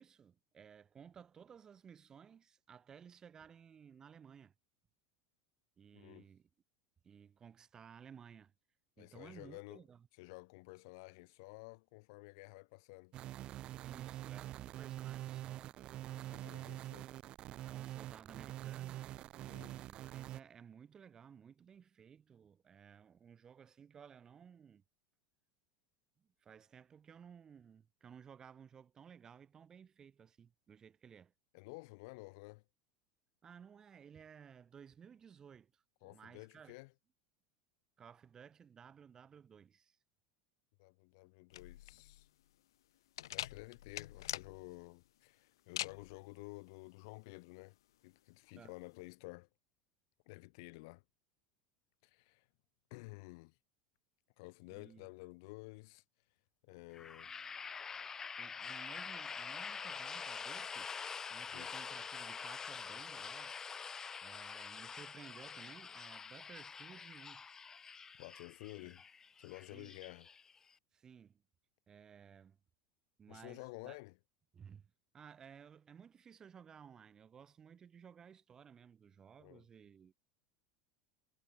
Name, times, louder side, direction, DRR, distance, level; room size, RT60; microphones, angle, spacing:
voice 1, 0.0-4.5 5.8-6.4 7.0-8.5 9.0-10.1 13.8-15.8 17.7-19.1 19.8-24.8 26.2-31.3 33.4-36.8 38.0-40.0 48.6-48.7 54.7-55.1 58.4-60.9 61.3-63.6 64.2-67.4 68.7-68.9 69.7-70.0 70.9-71.4 71.9-72.6 73.2-74.0 74.5-80.1, right 7 dB, 25° right, 3.9 m, -57 dB
voice 2, 5.9-6.3 9.0-9.8 10.2-13.1 16.1-17.1 19.5-19.8 31.5-32.6 36.0-36.9 40.8-42.3 43.3-47.8 48.0-49.5 50.2-51.0 52.0-52.5 52.9-53.6 54.4-56.0 56.6-57.3 61.5-61.7 68.2-69.0 69.4-70.3 73.3-74.2 79.4-79.6, left 27 dB, 70° left, 3.2 m, -52 dB
sound 1, 13.1-20.4, right 14 dB, 45° right, 0.6 m, -45 dB
sound 2, 41.5-49.1, left 13 dB, 90° left, 0.5 m, -46 dB
sound 3, 56.9-70.7, left 6 dB, 20° left, 0.7 m, -46 dB
supercardioid pair, 115°, 2 cm